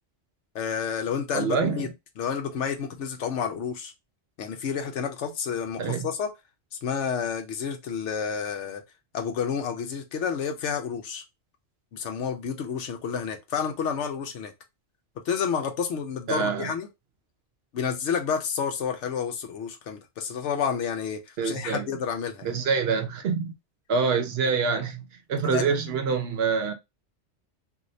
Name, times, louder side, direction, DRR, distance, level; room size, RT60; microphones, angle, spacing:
voice 1, 0.5-1.9 2.2-3.9 4.4-6.3 6.8-8.8 9.1-11.2 11.9-14.5 15.3-16.9 17.7-22.5 25.5-25.7, left 7 dB, 75° left, 1.0 m, -30 dB
voice 2, 1.3-1.9 5.8-6.1 16.3-16.7 21.4-21.9 22.4-23.5 23.9-25.0 25.3-26.7, right 5 dB, 65° right, 0.8 m, -26 dB
3.1 x 2.7 x 2.5 m
omnidirectional pair, 1.2 m